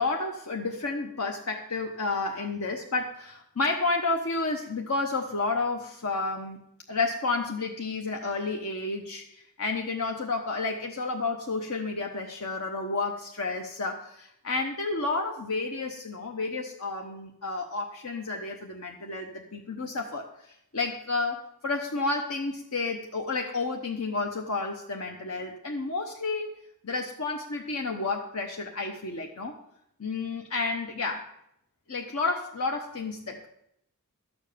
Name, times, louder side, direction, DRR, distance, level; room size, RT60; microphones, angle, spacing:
voice 1, 0.0-6.6 6.9-26.5 26.8-29.5 30.0-31.2 31.9-33.5, left 3 dB, 70° left, 2 dB, 1.0 m, -31 dB
12.5 x 7.3 x 6.8 m, 0.77 s
head